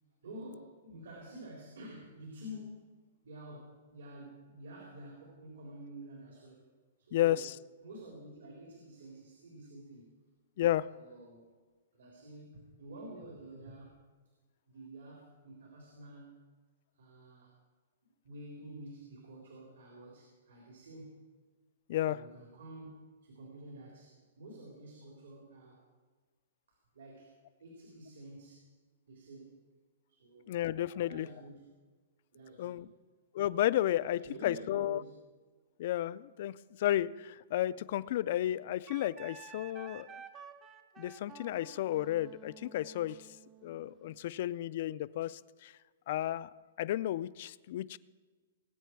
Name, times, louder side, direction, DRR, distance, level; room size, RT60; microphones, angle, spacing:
voice 1, 0.2-3.0 3.2-6.7 7.0-7.5 7.8-10.1 10.9-11.5 11.9-14.0 14.7-16.4 16.9-17.5 18.2-21.2 22.1-22.9 23.2-25.9 26.9-27.3 27.6-28.7 29.1-29.6 30.1-30.7 30.9-31.6 32.3-32.9 34.2-35.1, right 1 dB, 80° right, -2 dB, 3.8 m, -49 dB
voice 2, 7.1-7.5 10.6-10.9 21.9-22.2 30.5-31.3 32.6-32.9 33.3-35.0 35.8-40.1 41.0-43.2 43.6-45.7 46.1-46.5 46.8-48.0, left 13 dB, 40° left, 18 dB, 0.3 m, -32 dB
Wind instrument woodwind instrument, 38.9-44.2, right 6 dB, 15° right, 0.6 m, -52 dB
20.5 x 9.2 x 4.6 m, 1.4 s
hypercardioid pair, 175°, 0 cm